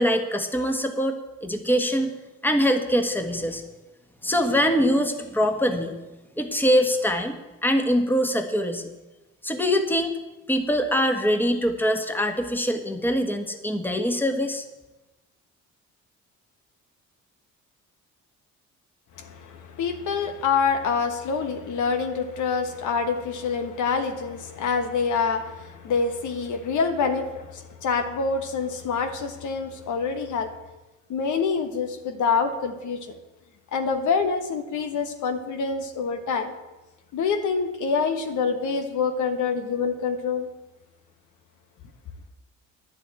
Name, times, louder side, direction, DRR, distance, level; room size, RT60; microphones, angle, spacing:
voice 1, 0.0-2.1 2.4-3.6 4.2-5.9 6.4-7.3 7.6-8.9 9.4-10.1 10.5-14.6, equal, 5° left, 5 dB, 1.5 m, -23 dB
voice 2, 19.2-30.5 31.1-33.1 33.7-36.5 37.1-40.5, left 5 dB, 80° left, 6 dB, 1.4 m, -26 dB
10.5 x 7.1 x 9.2 m, 1.1 s
cardioid pair, 90°, 30 cm